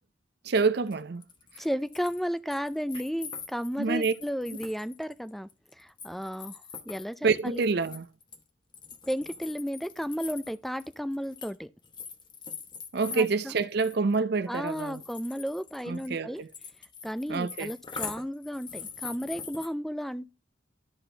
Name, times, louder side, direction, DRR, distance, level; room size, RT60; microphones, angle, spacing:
voice 1, 0.4-1.2 3.8-4.1 7.2-8.1 12.9-15.0 15.9-16.5 17.3-17.7, right 4 dB, 60° right, 0.6 m, -27 dB
sound 1, 0.9-1.0 1.2-2.2 2.5-8.4 8.7-11.6 11.8-14.2 14.5-19.7, left 6 dB, 25° left, 0.9 m, -43 dB
voice 2, 1.6-5.5 5.8-7.6 9.1-11.7 13.1-13.5 14.4-16.4 17.0-20.3, equal, ahead, 0.4 m, -33 dB
12.0 x 4.2 x 3.3 m
head